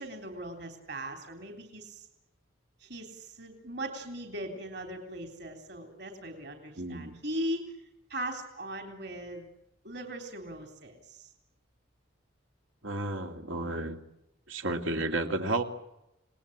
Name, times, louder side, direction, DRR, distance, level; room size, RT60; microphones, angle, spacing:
voice 1, 0.0-2.1 2.8-7.8 8.1-9.5 9.8-11.3, right 1 dB, 55° right, 5 dB, 3.6 m, -39 dB
voice 2, 6.8-7.1 12.8-14.0 14.5-15.6, right 2 dB, 80° right, 5 dB, 2.9 m, -32 dB
28.5 x 20.0 x 8.8 m, 0.86 s
head